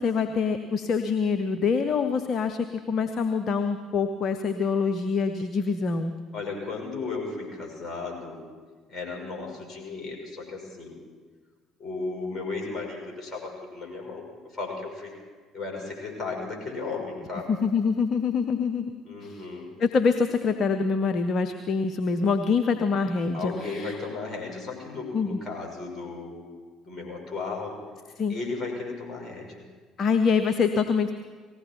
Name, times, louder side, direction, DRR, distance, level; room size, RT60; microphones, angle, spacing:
voice 1, 0.0-6.2 17.5-18.9 19.2-19.5 19.8-24.0 25.1-25.4 28.2-28.3 30.0-31.1, left 5 dB, 45° left, 8 dB, 0.8 m, -25 dB
voice 2, 6.3-8.4 8.9-11.0 11.8-14.3 14.5-15.1 15.5-17.5 19.0-19.7 23.3-26.5 26.8-27.8 28.3-29.6, left 3 dB, 30° left, -1 dB, 5.5 m, -35 dB
19.0 x 16.0 x 4.5 m, 1.5 s
figure-of-eight pair, 55°, 0 cm